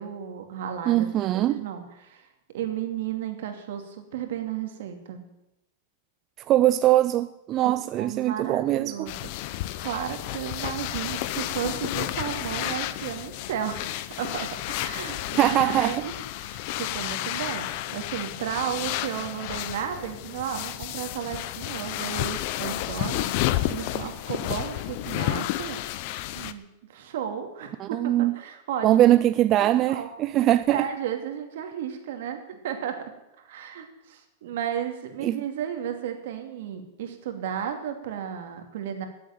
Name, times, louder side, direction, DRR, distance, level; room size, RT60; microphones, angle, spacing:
voice 1, 0.0-2.3 2.5-5.2 7.6-9.2 9.5-13.9 14.2-16.1 16.4-25.8 26.3-26.6 26.9-29.1 29.6-30.1 30.7-33.1 33.4-39.1, right 9 dB, 70° right, 2.6 m, -34 dB
voice 2, 0.9-1.7 6.5-9.1 15.4-15.9 27.8-28.3 28.8-30.8 35.2-35.4, right 13 dB, 30° right, 0.4 m, -22 dB
sound 1, 9.1-26.5, left 15 dB, 50° left, 0.7 m, -31 dB
14.0 x 7.9 x 9.3 m
supercardioid pair, 155°, 0 cm